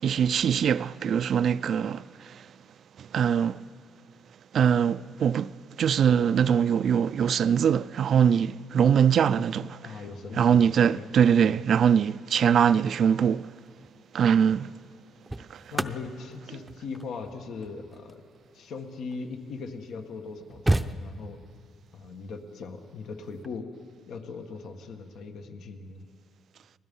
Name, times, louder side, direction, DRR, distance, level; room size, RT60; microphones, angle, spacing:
voice 1, 0.0-2.5 3.0-3.6 4.5-10.0 10.4-13.5 14.1-14.7 15.5-15.6, right 8 dB, 60° right, 0.4 m, -23 dB
voice 2, 9.8-10.7 10.9-11.1 11.4-11.6 15.7-18.2 18.5-21.4 21.9-23.7 24.1-26.0, left 4 dB, 75° left, 1.7 m, -39 dB
sound 1, 13.7-14.0 14.8-19.4 20.0-20.1 20.3-21.6 23.2-23.5, right 1 dB, 10° right, 0.7 m, -33 dB
29.5 x 20.0 x 5.5 m
cardioid pair, 90°, 0 cm